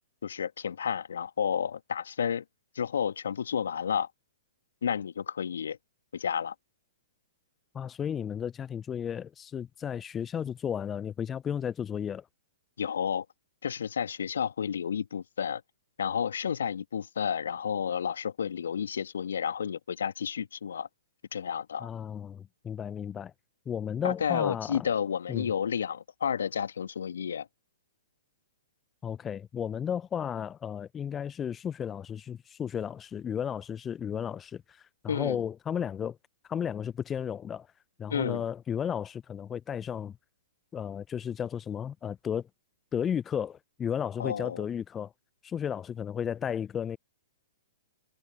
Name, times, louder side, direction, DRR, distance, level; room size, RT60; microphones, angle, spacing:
voice 1, 0.2-2.4 2.8-4.1 4.8-5.8 6.1-6.5 12.8-13.3 13.6-15.6 16.0-20.9 21.3-21.9 24.0-27.5 35.1-35.4 38.1-38.4 44.2-44.6, left 7 dB, 65° left, 1.7 m, -31 dB
voice 2, 7.7-12.3 21.8-23.3 23.7-24.9 25.3-25.5 29.0-36.2 36.5-37.7 38.0-40.2 40.7-42.5 42.9-45.1 45.4-47.0, left 8 dB, 20° left, 0.5 m, -34 dB
figure-of-eight pair, 115°, 0 cm